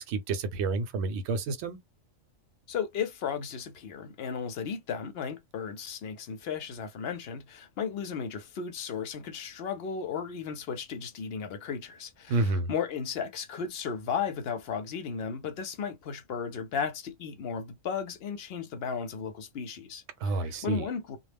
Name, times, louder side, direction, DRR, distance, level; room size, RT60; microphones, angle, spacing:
voice 1, 0.0-1.8 12.3-12.7 20.2-20.8, right 3 dB, 65° right, 0.8 m, -29 dB
voice 2, 2.7-21.2, left 6 dB, 60° left, 0.7 m, -35 dB
2.3 x 2.0 x 3.3 m
omnidirectional pair, 1.4 m